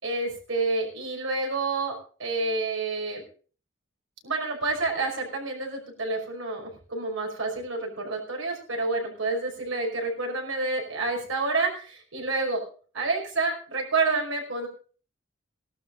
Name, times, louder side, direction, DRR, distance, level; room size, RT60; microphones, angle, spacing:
voice 1, 0.0-3.2 4.2-12.6 12.9-14.7, right 3 dB, 90° right, 1 dB, 5.4 m, -29 dB
17.0 x 12.0 x 3.9 m, 0.41 s
head